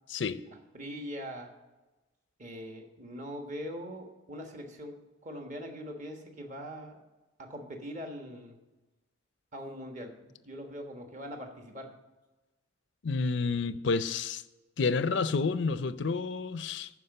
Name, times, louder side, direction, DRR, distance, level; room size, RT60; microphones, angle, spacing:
voice 1, 0.1-0.4 13.0-14.4 14.8-16.9, left 4 dB, 60° left, 0.5 m, -29 dB
voice 2, 0.7-1.5 2.4-7.0 7.4-8.6 9.5-11.9, equal, 35° right, 1.3 m, -42 dB
11.5 x 4.9 x 6.6 m
head